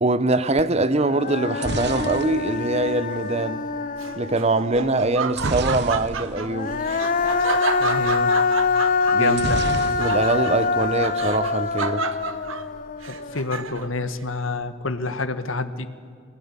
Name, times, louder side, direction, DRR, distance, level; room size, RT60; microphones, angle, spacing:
voice 1, 0.0-3.7 4.2-6.9 9.1-9.4 10.0-12.1, right 2 dB, 35° right, 0.9 m, -23 dB
Human voice, 0.6-0.7 1.0-4.7 6.4-13.6, left 4 dB, 40° left, 0.7 m, -25 dB
sound 1, 1.3-3.4 5.3-6.5 6.8-6.9 7.2-7.4 9.3-10.5 10.8-11.4, right 3 dB, 60° right, 1.0 m, -31 dB
Laughter, 4.0-14.0, right 5 dB, 85° right, 1.2 m, -31 dB
voice 2, 7.8-8.3 9.2-9.6 13.0-15.9, left 3 dB, 85° left, 1.4 m, -28 dB
25.0 x 20.0 x 9.8 m
head